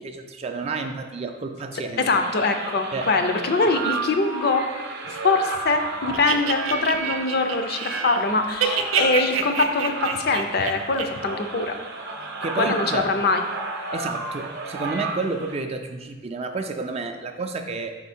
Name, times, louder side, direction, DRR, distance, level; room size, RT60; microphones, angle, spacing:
voice 1, 0.0-2.0 2.9-3.1 12.4-13.1 13.9-17.9, right 3 dB, 30° right, 6 dB, 0.3 m, -30 dB
voice 2, 2.0-4.6 5.1-11.7 12.6-13.4, left 3 dB, 50° left, 6 dB, 0.5 m, -23 dB
sound 1, 2.0-15.6, right 3 dB, 55° right, 0.7 m, -33 dB
sound 2, 6.1-8.2 8.5-11.0, right 7 dB, 85° right, 0.5 m, -27 dB
5.4 x 4.6 x 4.2 m, 1.3 s
head